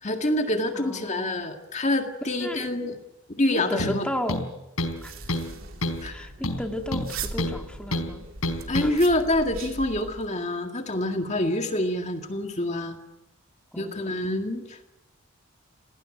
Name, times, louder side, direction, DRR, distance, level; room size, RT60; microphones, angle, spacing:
voice 1, 0.0-3.0 3.4-4.1 6.0-6.3 8.7-13.0 13.8-14.9, left 1 dB, 30° left, 5 dB, 2.0 m, -26 dB
voice 2, 0.7-1.4 2.4-2.7 3.5-4.5 5.0-5.1 6.1-8.2 8.8-9.0 13.7-14.0, left 1 dB, 5° left, 3 dB, 2.1 m, -34 dB
sound 1, 3.8-4.0 4.3-5.0 5.3-5.5 5.8-6.1 6.4-7.6 7.9-8.1 8.4-8.9, left 1 dB, 75° left, 4.2 m, -28 dB
sound 2, 4.8-10.3, right 4 dB, 65° right, 3.1 m, -39 dB
28.5 x 19.0 x 9.0 m, 0.97 s
head